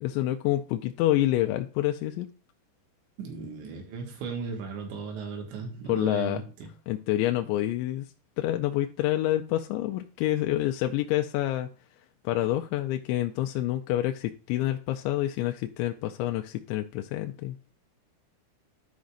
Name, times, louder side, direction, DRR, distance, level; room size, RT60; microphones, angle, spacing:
voice 1, 0.0-2.3 5.9-6.4 6.9-8.1 8.4-11.7 12.3-17.6, left 14 dB, 85° left, 2.8 m, -27 dB
voice 2, 3.2-6.7, right 5 dB, 85° right, 3.9 m, -36 dB
13.0 x 5.2 x 2.4 m
omnidirectional pair, 5.1 m